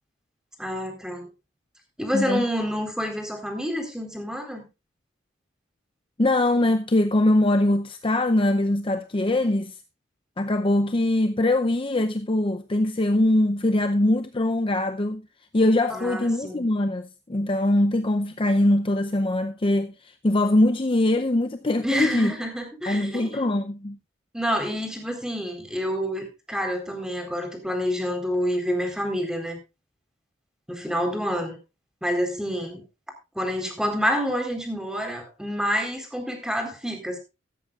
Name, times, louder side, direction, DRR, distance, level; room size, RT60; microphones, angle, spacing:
voice 1, 0.6-1.3 2.0-4.7 15.9-16.7 21.8-23.5 24.3-29.6 30.7-31.6 32.0-32.8 33.3-37.2, equal, 5° right, 4.0 m, -28 dB
voice 2, 2.1-2.4 6.2-9.7 10.4-15.2 15.5-19.9 20.2-22.3 22.9-24.0, left 1 dB, 30° left, 0.6 m, -22 dB
15.0 x 13.5 x 2.4 m
head